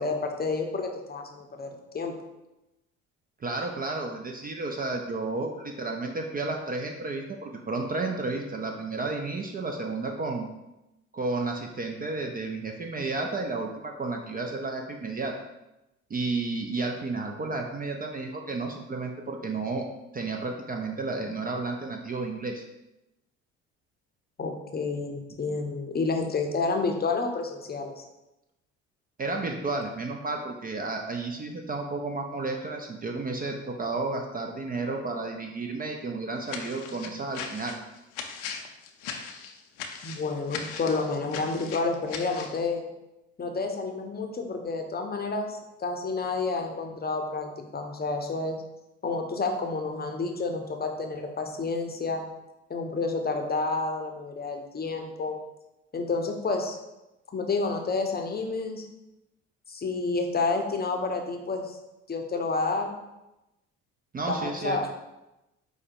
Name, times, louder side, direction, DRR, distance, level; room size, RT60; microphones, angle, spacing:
voice 1, 0.0-1.7 1.9-2.1 24.4-27.9 40.0-42.8 43.4-48.6 49.0-52.2 52.7-55.4 55.9-56.8 57.3-58.8 59.7-61.8 62.1-63.0 64.2-64.9, left 3 dB, 25° left, 3 dB, 0.7 m, -30 dB
voice 2, 3.4-10.5 11.1-15.4 16.1-22.6 29.2-37.8 64.1-64.8, right 3 dB, 25° right, 2 dB, 0.5 m, -32 dB
sound 1, 36.5-42.6, left 6 dB, 80° left, 0.6 m, -39 dB
4.8 x 2.1 x 4.4 m, 0.95 s
hypercardioid pair, 60°, 37 cm